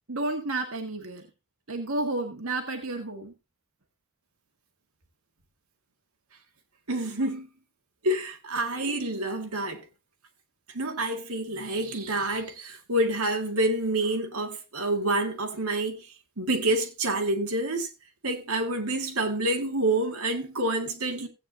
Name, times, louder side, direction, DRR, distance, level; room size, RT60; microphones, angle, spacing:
voice 1, 0.1-1.2 1.7-3.3, right 2 dB, 70° right, 1.8 m, -31 dB
voice 2, 6.9-7.5 8.0-9.8 10.7-16.1 16.4-17.9 18.2-21.3, right 1 dB, 85° right, 2.1 m, -28 dB
16.5 x 8.7 x 2.8 m
head